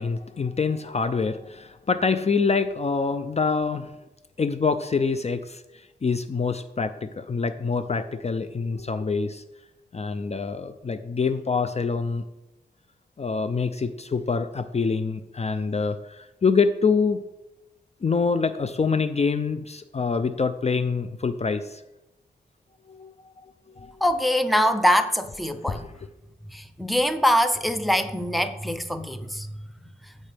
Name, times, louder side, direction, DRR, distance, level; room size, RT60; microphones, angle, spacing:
voice 1, 0.0-3.9 4.4-5.6 6.0-9.4 9.9-12.2 13.2-17.2 18.0-21.8 22.9-23.1 23.8-23.9 25.7-25.8, left 5 dB, 40° left, 0.5 m, -25 dB
voice 2, 24.0-25.9 26.5-29.5, equal, ahead, 0.7 m, -23 dB
15.5 x 5.4 x 3.4 m
wide cardioid pair, 80°, 18 cm